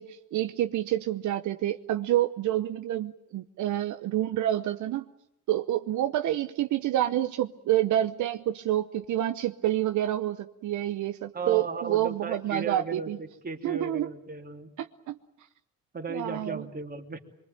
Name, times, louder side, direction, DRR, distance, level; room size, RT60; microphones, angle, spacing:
voice 1, 0.0-5.0 5.5-13.2 13.6-14.1 14.8-15.2 16.1-16.6, right 13 dB, 75° right, 8 dB, 0.9 m, -28 dB
voice 2, 11.3-14.7 15.9-17.2, right 4 dB, 30° right, 3 dB, 2.9 m, -35 dB
24.0 x 22.5 x 9.3 m, 0.79 s
cardioid pair, 90°, 30 cm